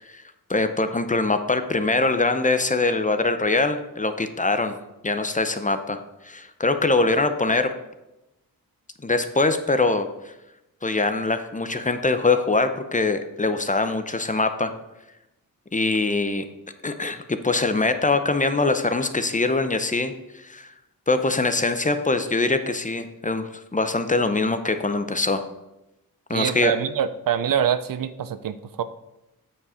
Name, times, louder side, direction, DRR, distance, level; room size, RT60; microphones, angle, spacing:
voice 1, 0.5-4.8 5.0-7.7 9.0-10.3 10.8-14.7 15.7-16.4 16.8-20.7 21.1-25.4 26.3-26.7, left 3 dB, 20° left, 9 dB, 0.7 m, -23 dB
voice 2, 26.3-28.8, right 9 dB, 65° right, 13 dB, 0.6 m, -25 dB
8.6 x 4.7 x 5.0 m, 0.94 s
cardioid pair, 75°, 36 cm